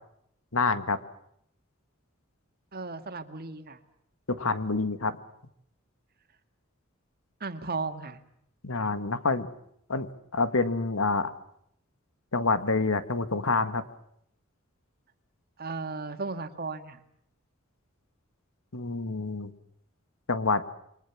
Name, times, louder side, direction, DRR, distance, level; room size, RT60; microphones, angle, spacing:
voice 1, 0.5-1.0 4.3-5.2 8.6-9.5 9.9-11.3 12.3-13.8 18.7-19.5 20.3-20.6, left 3 dB, 75° left, 11 dB, 1.8 m, -27 dB
voice 2, 2.7-3.8 7.4-8.2 15.6-17.0, right 4 dB, 50° right, 7 dB, 2.1 m, -35 dB
28.0 x 24.0 x 7.3 m, 0.74 s
head